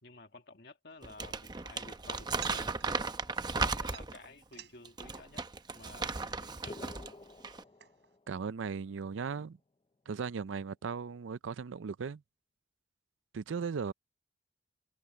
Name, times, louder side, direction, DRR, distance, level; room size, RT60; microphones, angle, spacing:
voice 1, 0.0-2.8 3.6-5.4 5.7-7.0, left 2 dB, 55° left, 1.9 m, -52 dB
sound 1, 0.9-8.2, right 12 dB, 60° right, 7.8 m, -55 dB
Crumpling crinkling, 1.0-4.3 4.9-7.1 7.4-7.6, right 4 dB, 20° right, 0.7 m, -36 dB
sound 2, 6.7-8.6, left 2 dB, 25° left, 0.4 m, -50 dB
voice 2, 8.3-9.6 10.1-12.2 13.3-13.9, right 5 dB, 85° right, 0.5 m, -37 dB
head